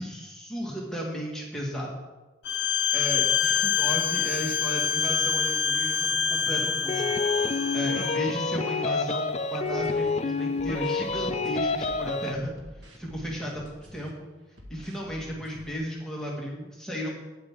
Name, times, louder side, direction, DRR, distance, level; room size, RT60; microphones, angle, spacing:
voice 1, 0.0-1.9 2.9-7.0 7.4-12.5 12.9-14.3 14.7-17.1, equal, 5° left, -4 dB, 1.9 m, -34 dB
Bowed string instrument, 2.4-8.2, left 7 dB, 75° left, 0.7 m, -26 dB
sound 1, 6.9-12.3, left 4 dB, 35° left, 0.4 m, -28 dB
sound 2, 9.6-10.1 10.6-14.1 14.5-15.7, equal, 90° right, 2.0 m, -48 dB
12.0 x 9.9 x 3.7 m, 1.1 s
head